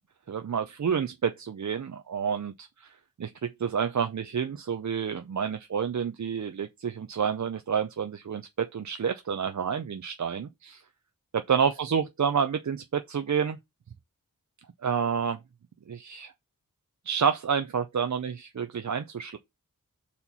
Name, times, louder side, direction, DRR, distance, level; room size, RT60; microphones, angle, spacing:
voice 1, 0.3-2.9 3.2-10.8 11.3-13.6 14.8-15.4 15.9-16.3 17.1-19.4, right 7 dB, 55° right, 0.5 m, -29 dB
4.4 x 4.2 x 5.5 m
wide cardioid pair, 65°, 35 cm